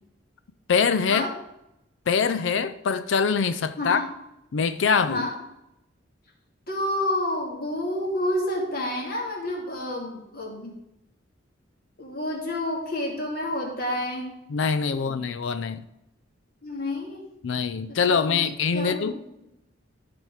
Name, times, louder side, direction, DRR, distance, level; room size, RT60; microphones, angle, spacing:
voice 1, 0.7-1.3 2.1-4.0 4.5-5.3 14.5-15.8 17.4-19.1, left 5 dB, 75° left, 0.4 m, -24 dB
voice 2, 6.7-10.8 12.0-14.3 14.9-15.2 16.6-17.2 17.9-19.2, left 1 dB, 50° left, 2.3 m, -29 dB
12.5 x 4.4 x 4.8 m
head